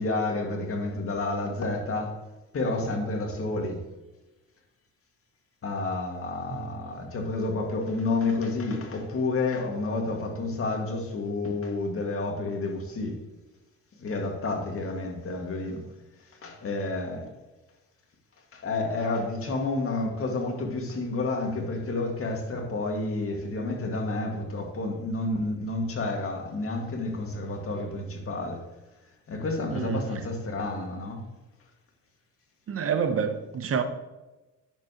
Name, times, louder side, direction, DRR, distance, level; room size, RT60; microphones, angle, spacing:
voice 1, 0.0-2.2 2.5-3.8 5.6-13.2 14.0-15.9 16.2-17.3 18.5-28.7 29.3-31.2, left 2 dB, 45° left, 2.0 m, -30 dB
voice 2, 29.7-30.0 32.7-33.8, right 6 dB, 50° right, 0.9 m, -28 dB
10.0 x 7.0 x 3.0 m
cardioid pair, 90°, 30 cm